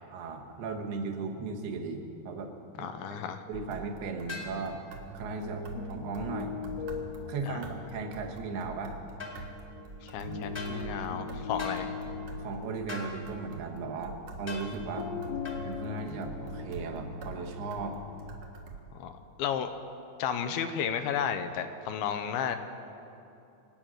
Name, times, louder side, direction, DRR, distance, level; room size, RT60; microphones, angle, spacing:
voice 1, 0.1-2.5 2.8-3.2 3.5-4.8 5.1-6.5 7.3-9.0 12.4-15.1 15.6-18.0, right 4 dB, 80° right, 2 dB, 3.3 m, -37 dB
voice 2, 2.8-3.4 7.4-7.6 10.0-11.9 18.9-19.1 19.4-19.7 20.2-22.6, left 8 dB, 80° left, 8 dB, 2.6 m, -33 dB
sound 1, 3.5-18.8, right 3 dB, 60° right, 1.8 m, -46 dB
sound 2, 4.3-4.5 9.2-9.4 10.5-10.8 11.6-11.8 12.9-13.1 14.5-14.7 15.4-15.6, left 3 dB, 20° left, 1.4 m, -39 dB
sound 3, 5.0-18.3, left 4 dB, 55° left, 1.4 m, -40 dB
24.0 x 8.9 x 6.3 m, 2.8 s
omnidirectional pair, 4.5 m